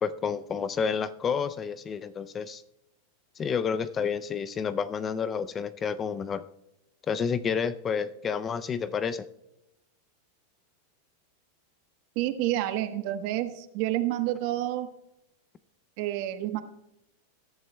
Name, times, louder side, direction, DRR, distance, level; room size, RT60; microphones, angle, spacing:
voice 1, 0.0-2.6 3.4-6.4 7.1-9.3, left 6 dB, 20° left, 15 dB, 0.4 m, -30 dB
voice 2, 12.1-14.9 16.0-16.6, right 14 dB, 50° right, 8 dB, 1.1 m, -29 dB
21.0 x 11.0 x 2.3 m, 0.86 s
supercardioid pair, 150°, 0 cm